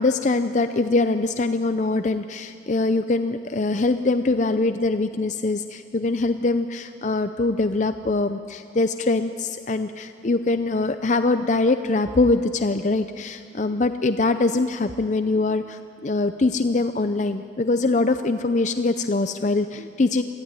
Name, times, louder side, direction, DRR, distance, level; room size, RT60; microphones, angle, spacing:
voice 1, 0.0-20.2, left 3 dB, 40° left, 9 dB, 0.5 m, -23 dB
23.0 x 15.0 x 9.6 m, 2.5 s
head